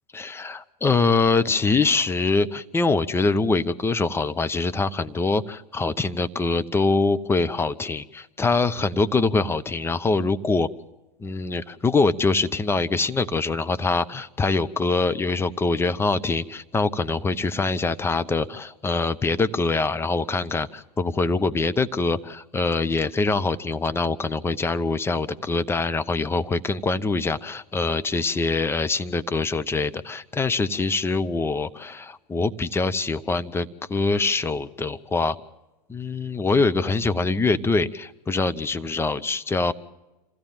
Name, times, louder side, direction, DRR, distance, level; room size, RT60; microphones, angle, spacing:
voice 1, 0.1-10.7 11.2-35.4 35.9-39.7, left 3 dB, 10° left, 11 dB, 0.9 m, -24 dB
27.0 x 16.0 x 7.4 m, 1.0 s
figure-of-eight pair, 90°, 21 cm